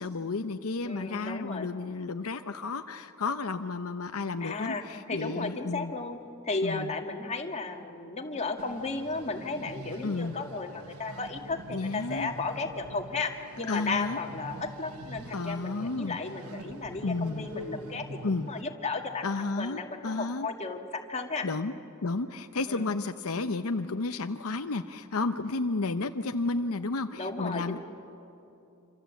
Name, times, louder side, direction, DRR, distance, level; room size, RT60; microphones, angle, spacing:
voice 1, 0.0-5.9 6.6-6.9 10.0-10.4 11.7-12.3 13.7-14.2 15.3-16.2 17.0-17.5 18.2-18.5 19.2-20.5 21.4-21.7 22.0-27.8, left 3 dB, 70° left, 7 dB, 0.8 m, -32 dB
voice 2, 0.8-1.7 4.4-13.3 13.6-21.5 22.7-22.9 27.2-27.8, left 3 dB, 30° left, 3 dB, 2.0 m, -34 dB
sound 1, 8.6-18.6, right 1 dB, 85° right, 1.3 m, -45 dB
27.0 x 26.5 x 8.3 m, 2.8 s
head